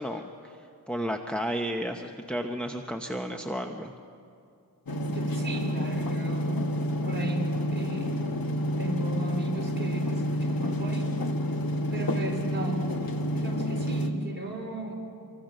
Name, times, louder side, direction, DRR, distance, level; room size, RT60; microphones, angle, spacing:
voice 1, 0.0-3.9, equal, 5° left, 4 dB, 1.0 m, -33 dB
sound 1, 4.9-14.1, equal, 65° left, 1.6 m, -29 dB
voice 2, 5.0-8.2 8.8-11.2 11.9-14.9, right 2 dB, 30° right, -1 dB, 4.9 m, -36 dB
26.5 x 24.0 x 6.7 m, 2.5 s
wide cardioid pair, 95°, 38 cm